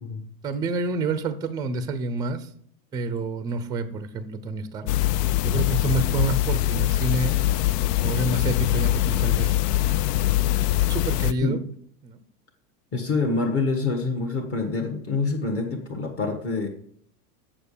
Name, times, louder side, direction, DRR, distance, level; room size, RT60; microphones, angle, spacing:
voice 1, 0.4-2.5 2.9-4.9 5.4-7.3 8.0-9.6 10.9-11.6 12.0-12.2, right 3 dB, 10° right, 13 dB, 0.5 m, -28 dB
sound 1, 4.9-11.3, left 14 dB, 90° left, 0.6 m, -23 dB
voice 2, 12.9-16.7, left 3 dB, 30° left, 1 dB, 1.4 m, -26 dB
7.5 x 6.8 x 6.9 m, 0.62 s
supercardioid pair, 145°, 46 cm